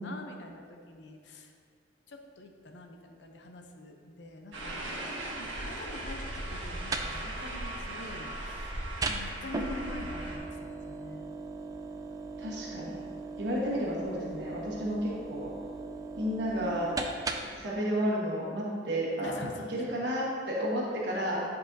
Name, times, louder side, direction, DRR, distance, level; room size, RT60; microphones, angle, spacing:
voice 1, 0.0-1.5 2.1-4.8 5.4-8.7 9.1-11.4 19.2-20.0, left 2 dB, 70° left, 3 dB, 0.6 m, -45 dB
sound 1, 4.5-10.4, right 1 dB, 90° right, 1.4 m, -38 dB
sound 2, 6.5-17.7, right 3 dB, 20° right, 0.4 m, -39 dB
voice 2, 12.4-13.0 13.4-15.5 16.2-16.9 17.6-19.3 19.7-21.4, equal, 65° right, -5 dB, 1.3 m, -32 dB
9.9 x 5.3 x 2.7 m, 2.2 s
head